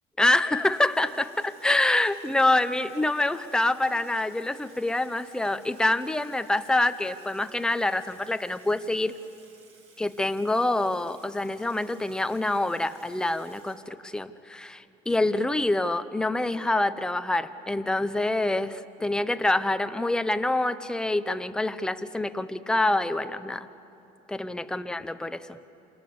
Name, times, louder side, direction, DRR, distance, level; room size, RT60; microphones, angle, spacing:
voice 1, 0.2-9.1 10.0-23.7 24.3-25.6, left 2 dB, 5° left, 10 dB, 0.8 m, -26 dB
Water tap faucet / Sink (filling or washing), 0.5-14.3, right 4 dB, 40° right, 4.3 m, -58 dB
29.0 x 28.0 x 7.0 m, 2.8 s
cardioid pair, 145°, 16 cm